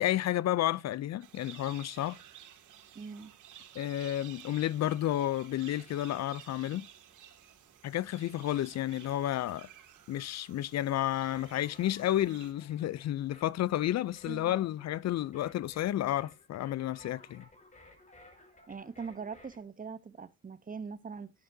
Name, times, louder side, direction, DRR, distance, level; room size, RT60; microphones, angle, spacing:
voice 1, 0.0-2.2 3.8-6.9 7.8-9.7 10.1-17.5, left 13 dB, 60° left, 0.5 m, -31 dB
sound 1, 1.2-12.5, right 10 dB, 80° right, 2.6 m, -54 dB
voice 2, 2.9-3.3 14.3-14.6 18.7-21.3, right 5 dB, 25° right, 1.0 m, -42 dB
sound 2, 10.9-19.6, left 2 dB, 25° left, 5.5 m, -57 dB
12.5 x 11.5 x 2.7 m
cardioid pair, 90°, 30 cm